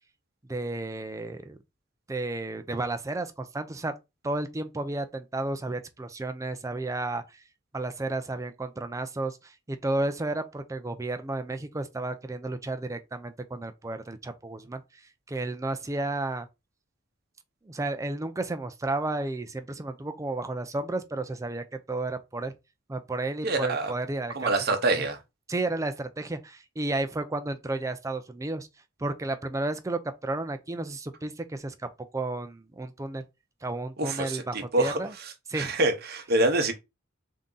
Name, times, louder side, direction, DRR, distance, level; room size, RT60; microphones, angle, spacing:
voice 1, 0.5-1.6 2.1-3.9 4.2-7.2 7.7-14.8 15.3-16.5 17.6-22.5 22.9-24.5 24.9-25.1 25.5-28.7 29.0-31.7 32.1-33.2 33.6-35.1 35.5-35.7, right 2 dB, 15° right, 0.4 m, -32 dB
voice 2, 23.4-23.9 24.3-25.2 34.0-35.0 35.5-36.7, right 2 dB, 55° right, 0.8 m, -26 dB
3.6 x 2.7 x 3.8 m
head